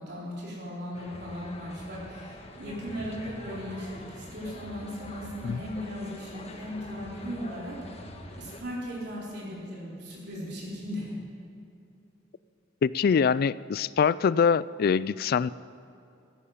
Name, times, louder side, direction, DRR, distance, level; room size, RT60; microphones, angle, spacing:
voice 1, 0.0-7.8 8.4-11.2, equal, 65° right, -6 dB, 3.9 m, -37 dB
sound 1, 0.9-8.6, left 1 dB, 35° left, 1.4 m, -44 dB
voice 2, 12.8-15.5, left 6 dB, 55° left, 20 dB, 0.3 m, -24 dB
15.5 x 14.0 x 5.7 m, 2.7 s
head